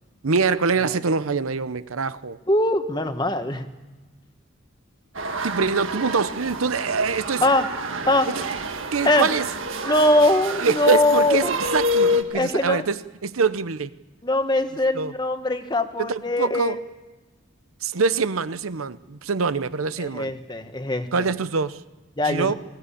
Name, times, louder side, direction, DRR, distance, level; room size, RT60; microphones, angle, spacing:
voice 1, 0.2-2.4 5.4-7.4 8.3-8.4 8.9-9.5 10.6-13.9 14.9-15.1 16.0-16.8 17.8-20.3 21.1-21.8 22.2-22.5, right 4 dB, 90° right, 14 dB, 0.8 m, -24 dB
voice 2, 2.5-3.7 7.4-7.7 8.1-8.3 9.0-9.3 9.8-11.6 12.3-12.8 14.2-16.8 20.0-21.1 22.2-22.5, left 1 dB, 20° left, 8 dB, 1.3 m, -22 dB
sound 1, 5.1-12.2, equal, 75° right, 1.6 m, -28 dB
21.0 x 16.0 x 8.6 m, 1.2 s
head